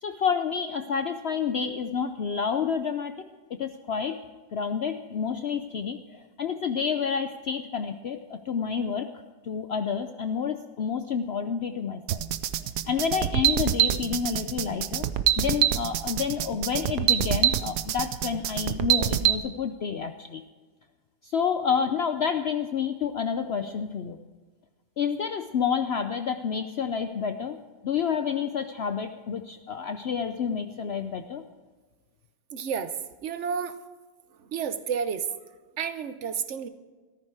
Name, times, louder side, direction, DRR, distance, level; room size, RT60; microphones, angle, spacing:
voice 1, 0.0-3.2 3.5-4.2 4.5-9.1 9.4-12.3 12.9-15.1 15.4-20.4 21.2-24.2 25.0-27.6 27.8-31.4, left 6 dB, 80° left, 7 dB, 0.5 m, -29 dB
sound 1, 12.1-19.4, right 12 dB, 70° right, 1.2 m, -25 dB
voice 2, 32.5-32.9 33.2-33.8 34.4-35.3 35.8-36.7, right 7 dB, 50° right, 11 dB, 1.0 m, -30 dB
14.5 x 14.0 x 4.7 m, 1.4 s
omnidirectional pair, 1.9 m